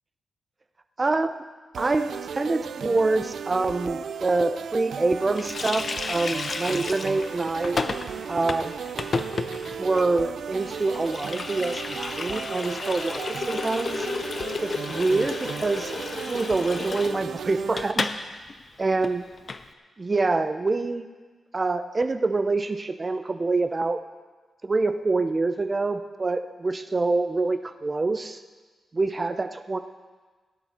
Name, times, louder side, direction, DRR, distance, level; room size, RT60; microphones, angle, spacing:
voice 1, 1.0-1.5 1.8-7.8 8.3-8.7 9.8-14.1 14.6-15.9 16.3-18.1 18.8-19.2 20.0-21.0 21.5-24.0 24.6-28.4 28.9-29.8, right 3 dB, 25° right, 9 dB, 0.6 m, -26 dB
sound 1, 1.7-17.9, right 7 dB, 75° right, 0.5 m, -35 dB
Water tap faucet, 5.4-18.2 18.5-18.6 18.9-19.6, left 4 dB, 40° left, 0.6 m, -33 dB
17.0 x 11.0 x 4.4 m, 1.4 s
wide cardioid pair, 135°, 0 cm